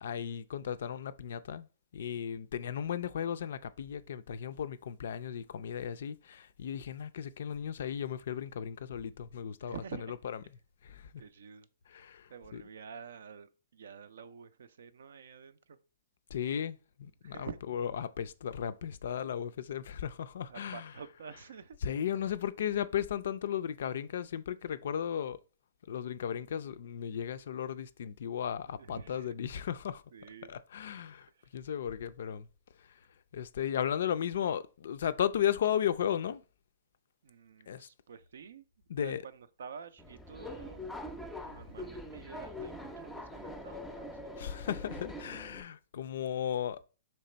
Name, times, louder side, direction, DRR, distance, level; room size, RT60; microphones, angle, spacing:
voice 1, 0.0-1.7 1.9-9.8 10.8-11.1 11.9-12.6 16.3-20.9 21.8-25.4 25.9-30.0 30.5-32.5 33.3-36.4 37.7-37.9 38.9-39.2 44.4-46.8, left 9 dB, 65° left, 0.3 m, -35 dB
voice 2, 9.6-10.1 11.2-11.7 12.3-15.8 17.2-17.6 20.5-21.8 28.2-28.3 28.7-29.4 30.1-30.5 31.3-31.6 37.2-38.6 39.0-40.8 41.5-44.3, right 6 dB, 70° right, 0.4 m, -48 dB
Subway metro underground, 40.0-45.6, left 1 dB, 5° left, 0.5 m, -43 dB
3.2 x 2.9 x 4.3 m
hypercardioid pair, 125°, 0 cm